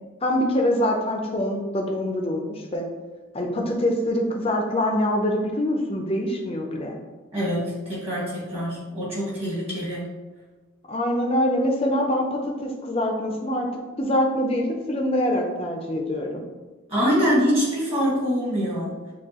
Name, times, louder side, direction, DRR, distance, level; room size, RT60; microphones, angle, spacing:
voice 1, 0.2-2.9 3.3-7.0 10.9-13.7 14.0-16.4, left 1 dB, 25° left, 1 dB, 0.5 m, -24 dB
voice 2, 7.3-10.1 16.9-19.0, equal, 30° right, -7 dB, 1.5 m, -24 dB
6.5 x 2.4 x 2.9 m, 1.3 s
head